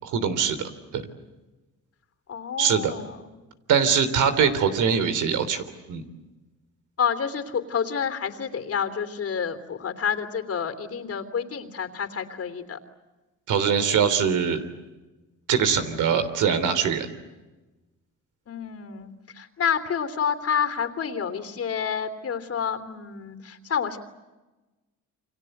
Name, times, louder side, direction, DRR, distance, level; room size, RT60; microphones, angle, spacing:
voice 1, 0.0-1.0 2.6-2.9 3.7-6.0 13.5-14.6 15.5-17.1, right 7 dB, 85° right, 10 dB, 3.4 m, -23 dB
voice 2, 2.3-3.2 7.0-12.8 18.5-24.0, left 7 dB, 50° left, 10 dB, 3.2 m, -29 dB
29.0 x 25.5 x 7.9 m, 1.1 s
cardioid pair, 90°, 30 cm